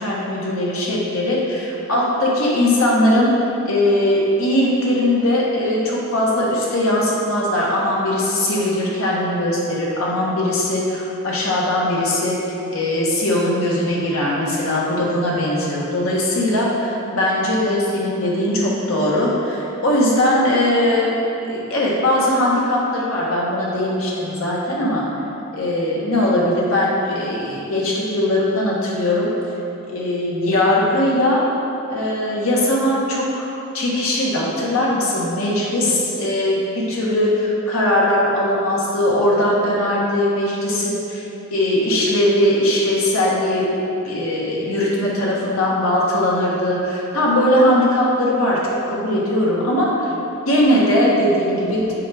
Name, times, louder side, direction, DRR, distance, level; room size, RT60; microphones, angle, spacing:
voice 1, 0.0-3.3 3.6-21.1 21.5-25.0 25.5-29.3 29.9-31.5 31.9-33.5 33.7-41.2 41.5-43.7 44.0-50.1 50.5-51.9, left 1 dB, 80° left, -5 dB, 1.4 m, -20 dB
7.4 x 4.8 x 3.5 m, 2.9 s
head